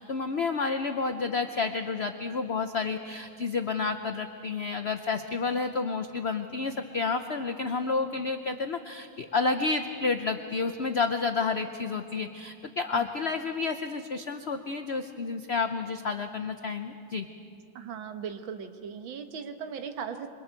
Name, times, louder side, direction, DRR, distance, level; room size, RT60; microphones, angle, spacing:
voice 1, 0.0-17.3, left 4 dB, 80° left, 7 dB, 0.5 m, -30 dB
voice 2, 17.8-20.3, right 7 dB, 90° right, 7 dB, 1.9 m, -38 dB
27.5 x 24.0 x 4.5 m, 2.4 s
omnidirectional pair, 2.1 m